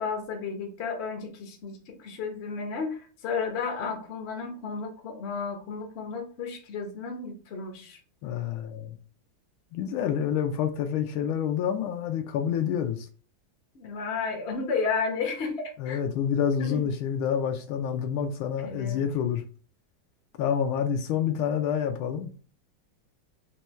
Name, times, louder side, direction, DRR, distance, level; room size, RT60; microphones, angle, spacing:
voice 1, 0.0-8.0 13.7-16.0 16.6-16.8 18.6-19.0, left 5 dB, 55° left, 0.7 m, -33 dB
voice 2, 8.2-9.0 9.7-13.1 15.8-19.4 20.4-22.3, left 8 dB, 80° left, 1.4 m, -28 dB
4.3 x 2.2 x 3.1 m
omnidirectional pair, 2.3 m